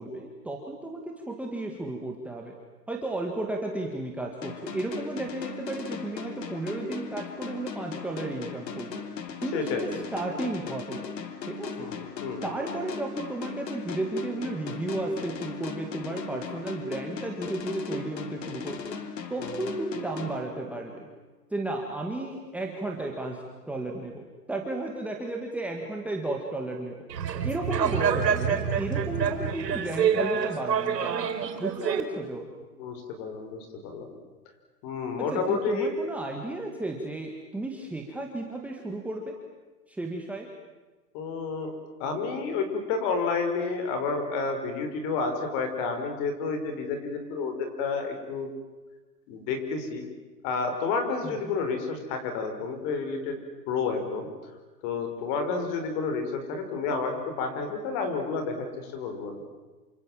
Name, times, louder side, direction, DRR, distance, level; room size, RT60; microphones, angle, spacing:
voice 1, 0.0-2.5 2.9-9.0 9.4-11.0 11.5-11.7 12.4-18.8 19.3-21.1 21.5-27.0 27.4-31.2 31.6-32.5 35.2-39.3 39.9-40.5 51.2-51.4, right 2 dB, 5° right, 0 dB, 1.8 m, -33 dB
sound 1, 4.4-21.0, left 6 dB, 80° left, 3.4 m, -38 dB
voice 2, 9.5-9.9 11.8-12.5 19.4-19.5 32.8-34.1 34.8-35.9 41.1-41.7 42.0-48.5 49.3-50.0 50.4-53.4 53.7-54.3 54.8-59.5, left 4 dB, 35° left, 6 dB, 5.4 m, -30 dB
sound 2, 27.1-32.0, right 7 dB, 85° right, 5.1 m, -27 dB
28.0 x 26.0 x 7.6 m, 1.2 s
hypercardioid pair, 150°, 49 cm